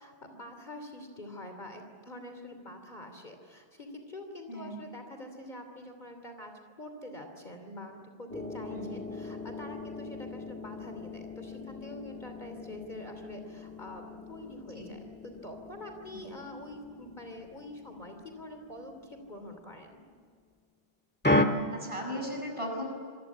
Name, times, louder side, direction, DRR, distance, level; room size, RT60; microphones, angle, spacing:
voice 1, 0.0-6.5 6.8-20.0, left 1 dB, 45° left, 5 dB, 3.3 m, -45 dB
voice 2, 4.5-4.8 8.7-9.0 14.8-15.0 16.1-16.2 21.5-22.8, equal, 30° right, 1 dB, 7.0 m, -37 dB
sound 1, 8.3-19.8 21.2-21.5, left 1 dB, 10° left, 1.7 m, -36 dB
26.5 x 23.0 x 8.6 m, 2.1 s
omnidirectional pair, 1.1 m